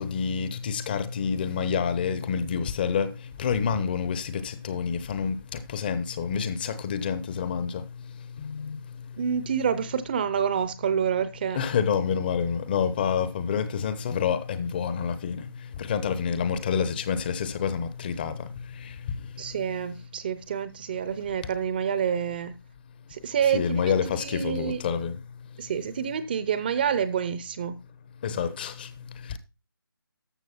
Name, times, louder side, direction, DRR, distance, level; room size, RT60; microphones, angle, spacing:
voice 1, 0.0-3.1 3.4-4.3 4.6-5.4 5.7-7.8 11.6-15.4 15.9-18.3 23.5-25.1 28.2-28.7, left 7 dB, 25° left, 0.8 m, -27 dB
voice 2, 9.2-11.6 19.4-22.6 23.1-24.8 25.6-27.8, right 8 dB, 25° right, 0.7 m, -28 dB
13.0 x 6.5 x 4.3 m
figure-of-eight pair, 155°, 12 cm